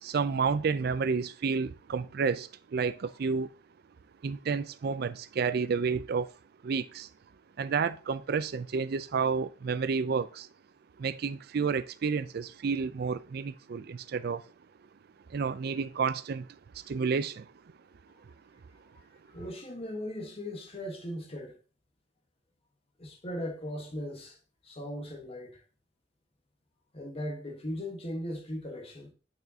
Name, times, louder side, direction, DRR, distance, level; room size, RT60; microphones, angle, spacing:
voice 1, 0.0-3.5 4.2-6.3 6.6-7.1 7.6-10.5 11.0-14.4 15.3-16.5 16.7-17.5, right 5 dB, 60° right, 0.4 m, -30 dB
voice 2, 19.3-21.6 23.0-24.4 24.6-25.6 26.9-29.1, left 1 dB, 35° left, 1.3 m, -38 dB
9.2 x 6.1 x 2.8 m
head